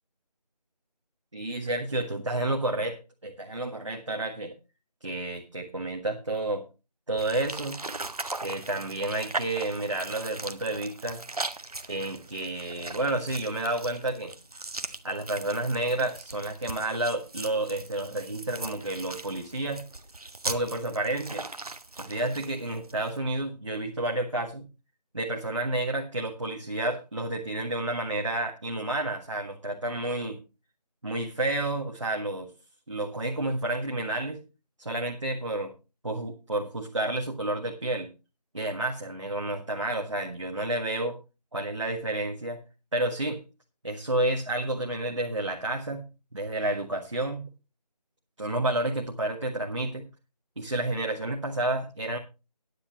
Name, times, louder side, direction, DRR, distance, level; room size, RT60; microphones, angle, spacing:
voice 1, 1.3-4.5 5.0-6.6 7.1-7.8 8.4-11.2 11.9-14.3 15.0-19.8 20.4-21.4 22.0-24.7 25.1-30.4 31.0-32.5 32.9-34.4 34.8-35.7 36.0-38.1 38.5-41.2 41.5-42.6 42.9-43.4 43.8-46.1 46.3-47.5 48.4-50.0 50.6-52.2, right 2 dB, 45° right, 1 dB, 1.6 m, -30 dB
sound 1, 7.2-23.2, right 2 dB, 60° right, 1.0 m, -39 dB
16.0 x 10.0 x 2.9 m, 0.30 s
figure-of-eight pair, 180°, 21 cm